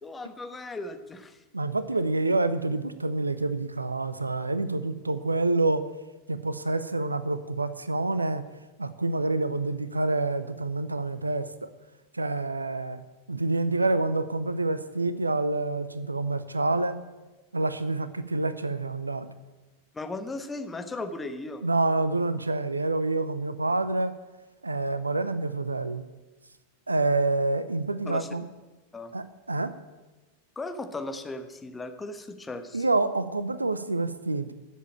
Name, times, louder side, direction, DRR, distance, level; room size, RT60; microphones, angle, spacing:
voice 1, 0.0-1.4 19.9-21.6 28.1-28.3 28.9-29.1 30.5-32.8, left 2 dB, 15° left, 7 dB, 1.2 m, -37 dB
voice 2, 1.5-5.8 6.3-8.4 8.8-11.7 12.1-13.0 13.3-17.0 17.5-19.3 21.6-24.1 24.6-26.0 26.9-28.4 29.1-29.7 32.7-34.5, right 2 dB, 80° right, 14 dB, 0.7 m, -27 dB
12.0 x 7.4 x 8.7 m, 1.2 s
figure-of-eight pair, 90°, 0 cm